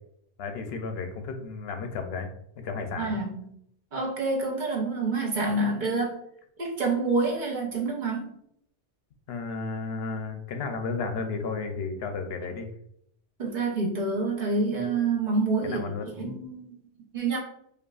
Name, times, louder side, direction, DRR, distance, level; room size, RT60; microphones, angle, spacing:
voice 1, 0.4-2.3 2.6-3.2 9.3-12.7 15.6-16.1, left 4 dB, 70° left, 6 dB, 0.8 m, -33 dB
voice 2, 3.0-3.3 3.9-6.2 6.6-8.3 13.4-15.8 16.2-16.9 17.1-17.4, right 3 dB, 50° right, -2 dB, 0.8 m, -27 dB
5.0 x 2.4 x 2.3 m, 0.72 s
omnidirectional pair, 1.1 m